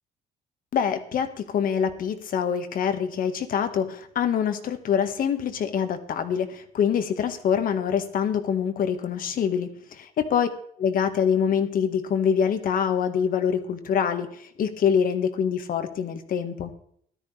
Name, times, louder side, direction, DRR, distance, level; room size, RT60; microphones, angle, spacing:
voice 1, 0.7-9.7 10.2-10.5 10.8-16.7, left 7 dB, 55° left, 8 dB, 1.7 m, -25 dB
16.5 x 13.0 x 3.4 m, 0.65 s
cardioid pair, 110°, 17 cm